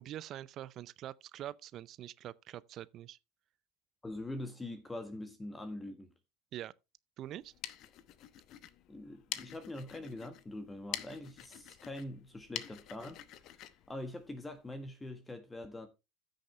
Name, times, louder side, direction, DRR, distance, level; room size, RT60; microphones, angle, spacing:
voice 1, 0.0-3.2 6.5-6.7 7.2-7.5, right 12 dB, 45° right, 0.5 m, -44 dB
voice 2, 4.0-6.1 8.9-13.2 13.9-15.9, left 1 dB, 15° left, 1.5 m, -43 dB
sound 1, 7.3-14.8, left 12 dB, 50° left, 0.9 m, -47 dB
14.5 x 6.5 x 3.2 m
hypercardioid pair, 75°, 0 cm